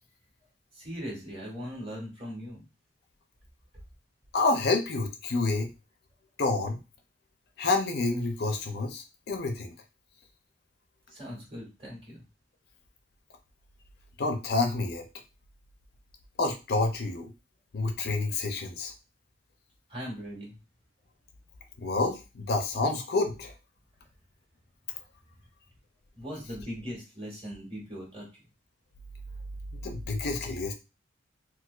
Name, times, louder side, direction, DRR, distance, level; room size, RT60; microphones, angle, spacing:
voice 1, 0.7-2.6 11.1-12.2 19.9-20.6 26.1-28.3, equal, 30° right, -4 dB, 1.7 m, -39 dB
voice 2, 4.3-5.7 6.4-6.8 7.6-9.7 14.2-15.1 16.4-17.3 17.7-18.9 21.8-23.5 29.8-30.7, left 3 dB, 55° left, 5 dB, 0.5 m, -28 dB
4.3 x 2.2 x 2.3 m, 0.28 s
head